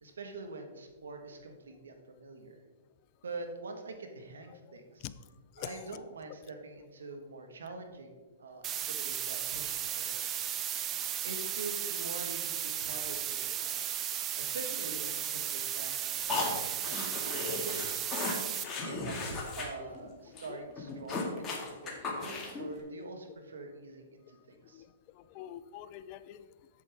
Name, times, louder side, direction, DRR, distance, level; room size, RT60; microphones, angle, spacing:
voice 1, 0.0-2.6 3.2-5.1 5.6-10.5 11.2-13.8 14.4-17.9 18.5-24.8, right 3 dB, 85° right, 5 dB, 1.4 m, -45 dB
voice 2, 4.7-5.1 5.6-5.7 20.5-20.6 24.7-24.9 25.1-26.5, left 13 dB, 40° left, 14 dB, 0.4 m, -45 dB
sound 1, 8.6-18.6, right 10 dB, 25° right, 0.5 m, -35 dB
sound 2, 16.3-19.7 19.9-20.1 20.4-20.5 20.8-22.7, left 3 dB, 25° left, 1.9 m, -36 dB
8.4 x 7.5 x 3.5 m, 1.3 s
hypercardioid pair, 130°, 0 cm